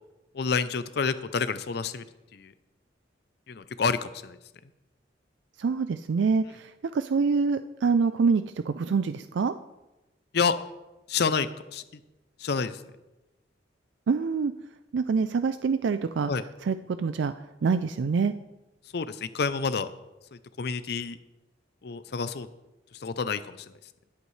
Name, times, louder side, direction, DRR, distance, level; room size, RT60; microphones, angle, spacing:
voice 1, 0.3-2.0 2.3-2.5 3.5-4.4 10.3-10.6 11.1-11.8 12.4-12.8 16.3-16.4 18.9-19.9 20.6-21.2 21.8-22.5 23.0-23.7, left 5 dB, 60° left, 13 dB, 0.5 m, -28 dB
voice 2, 5.6-9.5 14.1-14.5 14.9-16.3 16.6-17.3 17.6-18.3, right 5 dB, 80° right, 11 dB, 0.4 m, -25 dB
20.0 x 8.1 x 3.2 m, 1.0 s
head